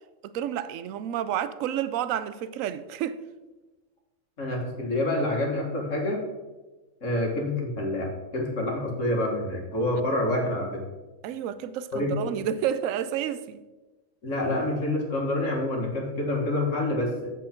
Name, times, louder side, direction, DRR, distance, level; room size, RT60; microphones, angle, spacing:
voice 1, 0.2-3.2 11.2-13.6, right 10 dB, 70° right, 0.9 m, -30 dB
voice 2, 4.4-6.2 7.0-10.8 11.9-12.1 14.2-17.3, left 1 dB, 55° left, 2.0 m, -27 dB
8.2 x 7.1 x 4.4 m
omnidirectional pair, 1.5 m